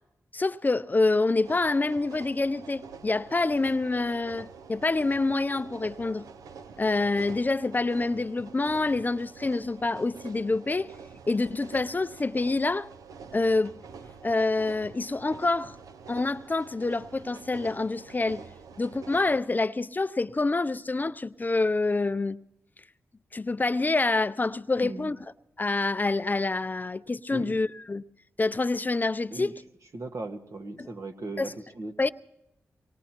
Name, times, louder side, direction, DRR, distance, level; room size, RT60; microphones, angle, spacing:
voice 1, 0.3-6.2 6.8-10.9 11.3-12.9 13.3-13.7 14.2-15.8 16.1-18.4 18.8-22.4 23.3-25.2 25.6-28.0 28.4-29.5 30.8-30.9 31.4-31.5 32.0-32.1, left 3 dB, 30° left, 0.5 m, -27 dB
sound 1, 1.4-19.4, right 6 dB, 85° right, 0.6 m, -47 dB
voice 2, 24.8-25.1 27.3-27.6 29.3-29.5 29.9-31.9, right 2 dB, 60° right, 1.5 m, -38 dB
24.0 x 19.5 x 3.0 m
cardioid pair, 50°, 6 cm